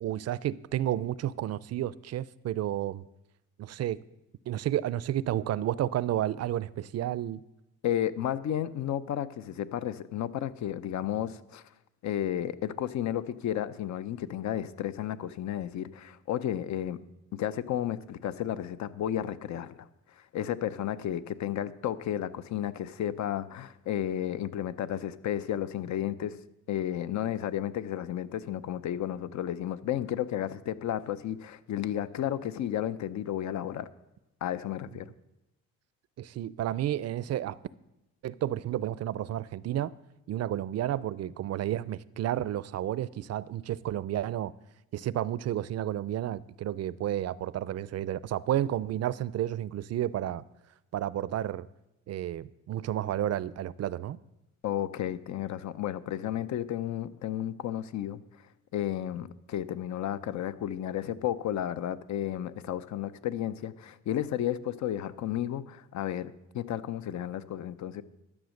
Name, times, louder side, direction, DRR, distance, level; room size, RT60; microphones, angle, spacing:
voice 1, 0.0-3.1 3.6-4.0 4.5-7.4 36.2-37.6 38.2-39.9 40.3-44.5 44.9-50.4 50.9-51.7 52.1-54.2, right 12 dB, 55° right, 0.5 m, -31 dB
voice 2, 7.8-11.6 12.0-17.0 17.3-19.9 20.3-26.4 26.7-33.9 34.4-35.1 54.6-58.2 58.7-68.0, left 11 dB, 70° left, 0.7 m, -32 dB
12.0 x 7.2 x 6.5 m
cardioid pair, 90°, 30 cm